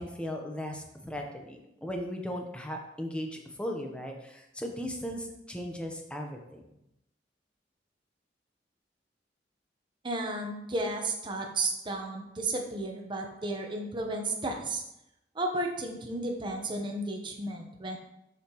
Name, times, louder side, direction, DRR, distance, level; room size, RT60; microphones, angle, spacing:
voice 1, 0.0-6.6, equal, 5° left, 2 dB, 0.8 m, -37 dB
voice 2, 10.0-14.8 15.3-18.0, right 2 dB, 25° right, 2 dB, 0.9 m, -33 dB
7.2 x 5.7 x 3.0 m, 0.83 s
head